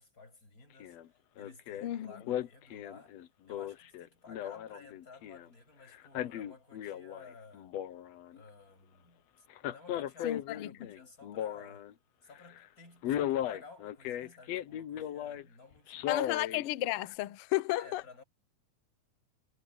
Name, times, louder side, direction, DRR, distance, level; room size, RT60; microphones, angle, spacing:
voice 1, 0.0-3.2 3.4-7.7 8.3-11.9 12.2-16.5 17.7-18.2, left 4 dB, 25° left, 8.5 m, -55 dB
Male speech man speaking, 0.8-1.1 1.4-1.9 2.3-5.5 5.9-7.3 7.5-8.4 9.5-11.9 12.4-12.6 13.0-15.4 15.9-16.6 17.1-17.2, left 11 dB, 65° left, 1.9 m, -36 dB
voice 2, 1.8-2.1 10.2-10.7 16.1-18.0, left 16 dB, 80° left, 1.2 m, -33 dB
omnidirectional pair, 3.6 m